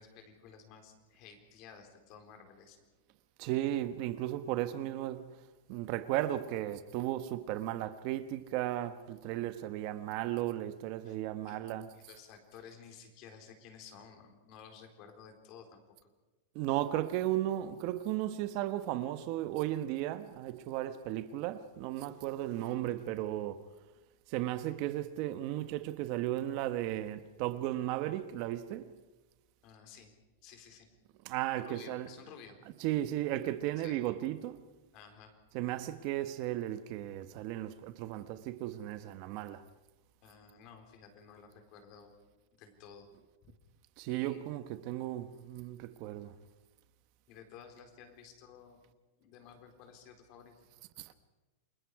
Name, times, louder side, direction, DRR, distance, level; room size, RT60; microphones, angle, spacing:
voice 1, 0.0-2.8 11.0-11.2 11.4-11.6 11.9-15.8 29.6-30.1 30.4-30.9 31.6-32.6 33.8-34.0 34.9-35.4 40.2-42.1 42.5-43.1 43.4-43.5 44.1-44.5 47.3-48.8 49.2-50.5, left 7 dB, 40° left, 4.1 m, -54 dB
voice 2, 3.4-5.4 5.7-11.9 16.5-23.6 24.3-28.9 31.2-32.2 32.6-34.6 35.5-39.7 44.0-46.4 51.0-51.1, right 13 dB, 45° right, 1.2 m, -35 dB
29.0 x 21.0 x 4.9 m
supercardioid pair, 150°, 0 cm